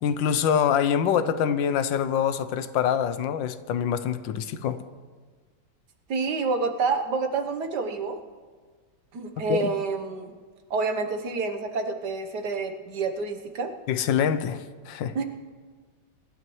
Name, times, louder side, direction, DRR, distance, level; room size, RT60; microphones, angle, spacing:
voice 1, 0.0-4.8 9.5-9.7 13.9-15.1, left 8 dB, 85° left, 12 dB, 1.4 m, -25 dB
voice 2, 6.1-8.2 9.1-10.3 10.7-13.7 15.1-15.2, right 4 dB, 65° right, 5 dB, 1.7 m, -28 dB
24.0 x 12.5 x 3.1 m, 1.5 s
omnidirectional pair, 2.0 m